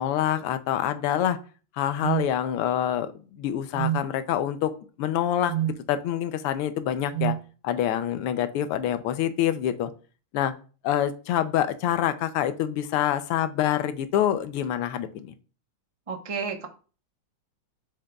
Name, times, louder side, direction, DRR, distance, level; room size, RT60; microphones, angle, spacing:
voice 1, 0.0-1.4 1.8-3.1 3.4-4.7 5.0-5.5 5.9-7.3 7.6-9.9 10.3-10.5 10.8-15.3, left 11 dB, 85° left, 10 dB, 1.6 m, -26 dB
sound 1, 2.0-2.3 3.7-4.1 5.5-5.8 7.1-7.4, right 12 dB, 80° right, 1.7 m, -26 dB
voice 2, 16.1-16.7, right 5 dB, 30° right, 4 dB, 0.6 m, -31 dB
7.6 x 6.4 x 2.3 m, 0.37 s
omnidirectional pair, 2.4 m